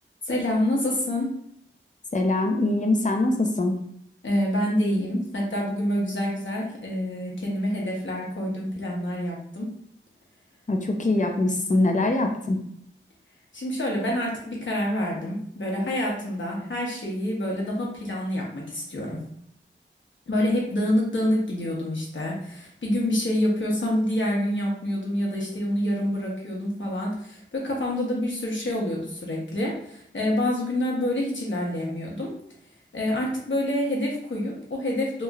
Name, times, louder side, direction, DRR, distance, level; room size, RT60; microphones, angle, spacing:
voice 1, 0.2-1.3 4.2-9.7 13.5-19.2 20.3-32.3 32.9-35.2, left 1 dB, 70° left, -3 dB, 1.0 m, -27 dB
voice 2, 2.1-3.8 10.7-12.6, left 2 dB, 40° left, 3 dB, 0.5 m, -23 dB
3.1 x 2.9 x 2.3 m, 0.68 s
wide cardioid pair, 75°, 20 cm